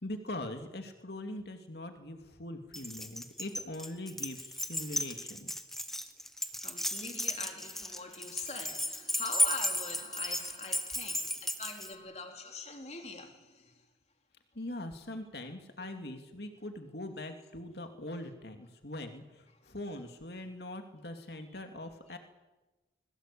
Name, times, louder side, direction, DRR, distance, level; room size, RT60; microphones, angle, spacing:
voice 1, 0.0-5.5 14.5-22.2, left 1 dB, 60° left, 2.6 m, -42 dB
Keys jangling, 2.7-11.9, left 1 dB, ahead, 1.2 m, -34 dB
voice 2, 6.6-13.7 15.8-16.1 16.5-16.6 19.6-19.8 21.5-21.6, left 4 dB, 35° left, 3.2 m, -44 dB
22.0 x 21.0 x 8.6 m
head